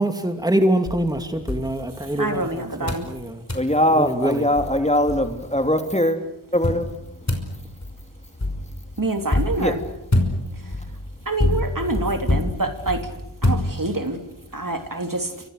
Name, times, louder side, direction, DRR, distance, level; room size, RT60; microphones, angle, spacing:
voice 1, 0.0-3.4 3.9-4.5, right 1 dB, 10° right, 6 dB, 2.7 m, -24 dB
sound 1, 0.8-2.4 2.9-3.1 3.5-3.7 4.2-4.3 4.6-5.7 6.6-14.2, left 1 dB, 35° left, 5.7 m, -26 dB
voice 2, 2.2-3.1 9.0-9.8 11.2-13.1 13.4-14.2 14.5-15.3, right 2 dB, 40° right, 6 dB, 3.2 m, -26 dB
voice 3, 3.5-6.2 6.5-6.9 9.6-9.7, left 1 dB, 15° left, 6 dB, 3.0 m, -21 dB
29.0 x 25.5 x 6.7 m, 0.84 s
wide cardioid pair, 45°, 49 cm